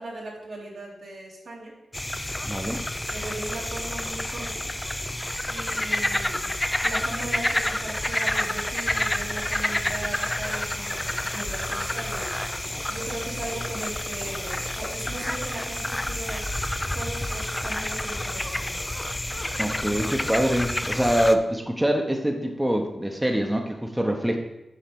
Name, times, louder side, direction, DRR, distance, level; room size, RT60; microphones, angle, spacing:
voice 1, 0.0-1.8 3.1-4.7 5.5-6.5 6.8-12.4 12.6-16.6 16.9-18.8, right 2 dB, 75° right, -3 dB, 2.2 m, -38 dB
sound 1, 1.9-21.3, left 1 dB, 15° left, 0.5 m, -29 dB
voice 2, 2.4-2.8 19.6-24.4, equal, 10° right, 3 dB, 0.9 m, -24 dB
7.4 x 4.0 x 5.4 m, 0.94 s
cardioid pair, 55°, 0 cm